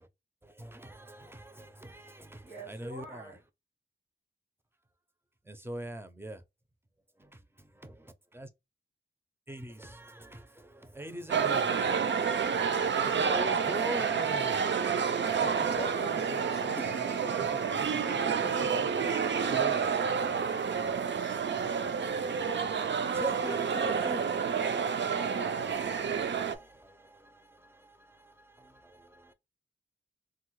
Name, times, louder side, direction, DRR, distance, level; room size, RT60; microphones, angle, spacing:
voice 1, 0.4-3.4 5.4-6.4 7.2-8.5 9.5-14.9 15.1-15.4 16.8-24.2 25.6-29.3, right 1 dB, 10° right, 0.5 m, -44 dB
voice 2, 2.4-3.4 24.1-25.9, right 2 dB, 90° right, 1.3 m, -44 dB
sound 1, 11.3-26.5, right 6 dB, 65° right, 0.4 m, -29 dB
voice 3, 15.4-17.3 17.9-18.9, left 2 dB, 30° left, 0.6 m, -44 dB
3.4 x 2.1 x 3.0 m
wide cardioid pair, 85°, 20 cm